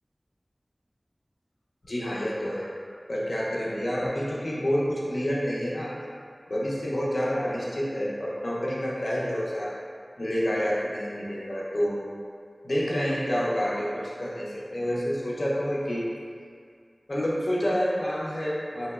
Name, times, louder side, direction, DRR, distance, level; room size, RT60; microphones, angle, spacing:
voice 1, 1.8-2.7 3.1-5.9 6.5-9.7 10.2-12.0 12.6-16.1 17.1-18.9, equal, 65° left, -6 dB, 0.5 m, -28 dB
2.9 x 2.7 x 2.3 m, 2.1 s
wide cardioid pair, 55°, 0 cm